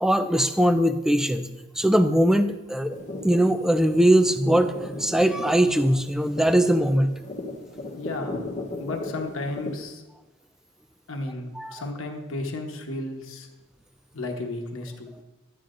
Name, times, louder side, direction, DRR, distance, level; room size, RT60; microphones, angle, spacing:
voice 1, 0.0-1.5 1.8-2.9 3.2-7.1 11.6-11.7, right 1 dB, ahead, 9 dB, 0.3 m, -21 dB
sound 1, 2.9-9.8, left 2 dB, 35° left, 0.9 m, -37 dB
voice 2, 7.9-8.5 8.8-10.0 11.1-13.5 14.1-15.1, left 2 dB, 70° left, 3 dB, 1.1 m, -33 dB
11.5 x 9.7 x 2.5 m, 1.1 s
head